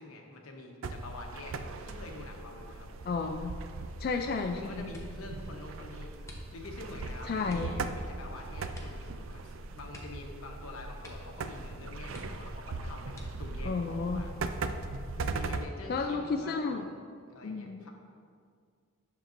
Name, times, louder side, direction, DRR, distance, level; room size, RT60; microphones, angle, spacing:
voice 1, 0.0-1.6 1.8-2.9 4.5-14.3 15.2-17.0 17.3-17.9, left 2 dB, 90° left, 2 dB, 1.0 m, -46 dB
sound 1, 0.8-15.6, right 3 dB, 65° right, 0.4 m, -39 dB
voice 2, 3.0-3.5 4.0-4.9 7.3-7.7 13.6-14.3 15.9-16.9 17.4-17.9, left 4 dB, 45° left, 4 dB, 0.3 m, -32 dB
sound 2, 4.9-5.3 6.2-6.9 7.4-7.8 8.7-9.1 9.3-9.4 9.9-10.6 11.0-11.4 11.7-11.8 12.1-12.6 13.1-13.6 14.4-15.0 15.4-15.7, left 1 dB, 15° left, 0.8 m, -48 dB
10.0 x 6.5 x 2.6 m, 2.1 s
head